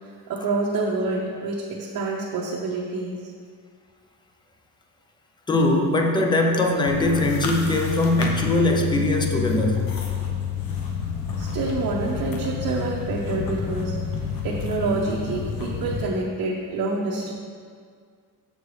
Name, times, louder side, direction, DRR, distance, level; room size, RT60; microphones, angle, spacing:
voice 1, 0.3-3.3 11.4-14.0 14.4-17.3, right 3 dB, 65° right, -4 dB, 0.8 m, -27 dB
voice 2, 5.5-9.9, left 1 dB, 15° left, 2 dB, 0.4 m, -21 dB
sound 1, 6.9-16.0, left 7 dB, 75° left, 0.9 m, -29 dB
6.9 x 6.5 x 3.2 m, 2.1 s
cardioid pair, 180°, 35 cm